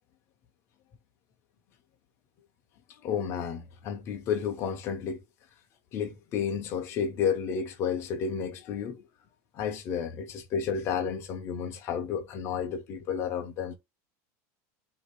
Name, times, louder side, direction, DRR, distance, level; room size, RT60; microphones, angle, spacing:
voice 1, 2.9-5.2 5.9-9.0 9.5-13.8, left 7 dB, 30° left, 0.6 m, -31 dB
3.9 x 2.7 x 4.6 m
cardioid pair, 175°, 8 cm